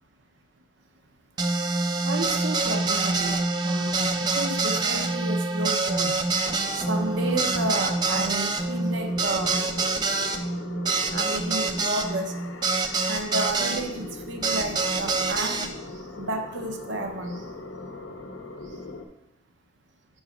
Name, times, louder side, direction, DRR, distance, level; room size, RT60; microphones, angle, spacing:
sound 1, 1.4-13.8 14.4-15.7, right 3 dB, 20° right, 0.3 m, -26 dB
voice 1, 2.0-6.2 6.9-9.8 11.1-12.3 13.0-15.7 16.2-17.5, right 2 dB, 75° right, 5 dB, 0.6 m, -31 dB
sound 2, 6.4-19.1, left 2 dB, 85° left, 0.6 m, -41 dB
4.9 x 3.9 x 4.9 m, 0.87 s
head